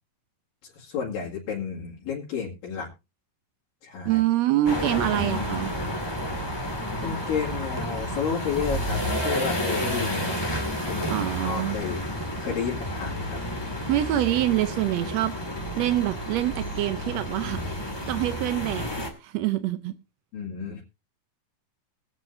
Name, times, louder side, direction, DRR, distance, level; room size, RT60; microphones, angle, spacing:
voice 1, 0.6-2.9 3.8-4.2 7.0-10.3 10.9-12.0 12.4-13.4 20.3-20.8, left 6 dB, 85° left, -6 dB, 3.9 m, -31 dB
voice 2, 4.0-5.7 10.8-11.8 13.9-15.3 15.8-18.9 19.2-19.9, right 14 dB, 85° right, 11 dB, 1.5 m, -26 dB
sound 1, 4.6-19.1, equal, 10° left, 1.6 m, -30 dB
23.5 x 7.8 x 2.7 m, 0.27 s
omnidirectional pair, 3.9 m